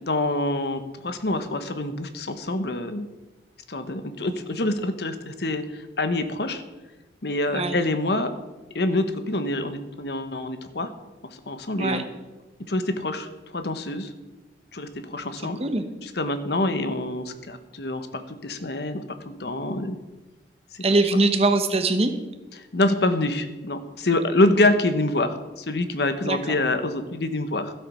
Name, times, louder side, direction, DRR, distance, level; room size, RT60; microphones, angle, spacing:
voice 1, 0.0-3.1 3.7-6.6 7.2-8.3 8.7-10.9 11.5-12.0 12.7-13.3 13.5-14.1 14.7-15.6 16.0-20.0 20.7-20.8 22.7-27.7, left 2 dB, 60° left, 10 dB, 1.0 m, -26 dB
voice 2, 20.8-22.1 26.2-26.6, right 2 dB, 35° right, 8 dB, 1.0 m, -22 dB
12.5 x 8.0 x 6.1 m, 1.1 s
head